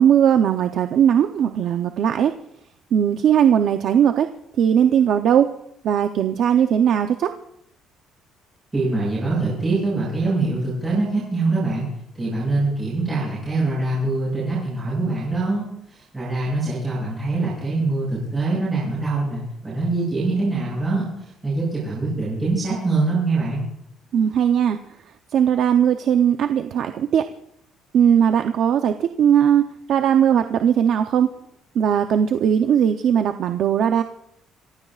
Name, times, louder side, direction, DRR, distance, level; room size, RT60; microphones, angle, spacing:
voice 1, 0.0-2.3 2.9-4.3 4.6-5.5 5.8-7.3 24.1-24.8 25.3-27.3 27.9-31.3 31.7-34.0, right 9 dB, 50° right, 6 dB, 0.7 m, -18 dB
voice 2, 8.7-11.9 12.1-21.1 21.4-23.6, right 3 dB, 15° right, -8 dB, 7.2 m, -24 dB
28.0 x 15.5 x 2.4 m, 0.77 s
cardioid pair, 165°, 0 cm